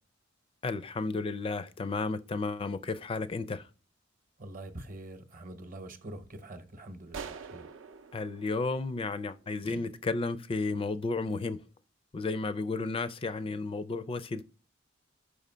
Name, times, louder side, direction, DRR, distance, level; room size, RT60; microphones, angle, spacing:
voice 1, 0.6-3.7 8.1-11.6 12.1-14.4, left 3 dB, 25° left, 0.4 m, -33 dB
voice 2, 4.4-7.7 9.6-9.8, right 1 dB, 45° right, 0.9 m, -45 dB
sound 1, 7.1-9.7, right 6 dB, 70° right, 0.5 m, -45 dB
5.6 x 5.0 x 5.5 m
head